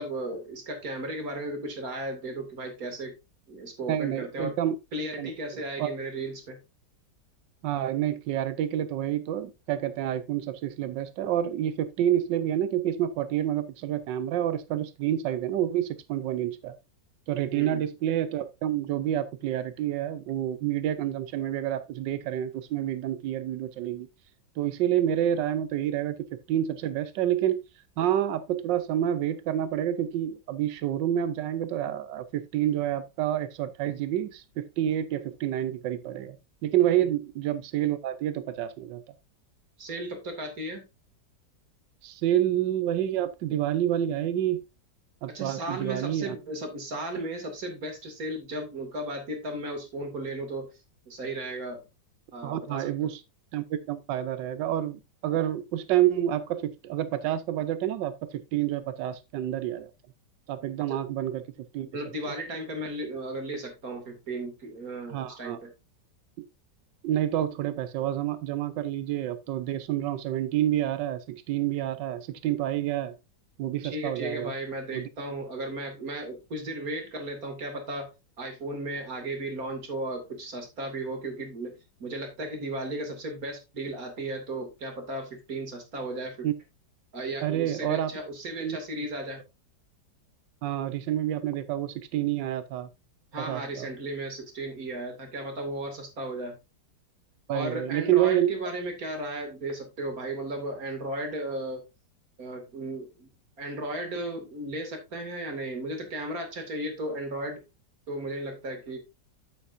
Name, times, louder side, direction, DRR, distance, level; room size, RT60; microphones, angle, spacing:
voice 1, 0.0-3.1 3.5-4.5 4.9-6.6 17.5-17.8 39.8-40.8 45.3-50.7 51.1-51.8 52.3-52.9 60.9-61.0 61.9-65.7 73.8-78.1 78.4-86.5 87.1-89.4 93.3-96.6 97.5-101.8 102.4-103.3 103.6-107.6 108.1-109.0, right 1 dB, 55° right, 2.9 m, -35 dB
voice 2, 3.9-4.8 5.2-5.9 7.6-16.7 17.3-24.1 24.6-27.6 28.0-36.4 36.6-39.0 42.0-44.6 45.2-46.4 52.4-53.2 53.5-59.9 60.5-61.4 61.7-61.9 62.3-62.4 65.1-65.6 66.4-66.5 67.0-73.1 73.6-74.5 74.9-75.1 86.4-86.5 87.4-88.1 88.6-88.8 90.6-92.9 93.4-93.9 97.5-98.5, right 11 dB, 85° right, 1.4 m, -28 dB
9.1 x 8.7 x 2.6 m
omnidirectional pair, 1.9 m